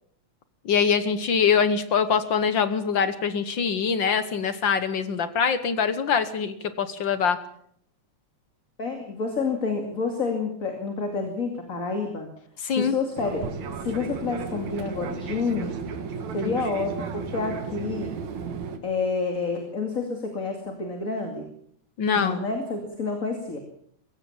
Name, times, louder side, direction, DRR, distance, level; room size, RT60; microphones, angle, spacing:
voice 1, 0.6-7.4 12.6-12.9 16.4-16.5 22.0-22.4, left 6 dB, 60° left, 12 dB, 1.2 m, -24 dB
voice 2, 8.8-12.3 12.7-13.4 13.8-15.8 16.3-18.1 18.8-21.5 22.1-23.6, left 4 dB, 30° left, 3 dB, 2.6 m, -29 dB
Fixed-wing aircraft airplane, 13.2-18.8, right 5 dB, 70° right, 3.0 m, -34 dB
21.5 x 16.5 x 7.3 m, 0.66 s
omnidirectional pair, 3.5 m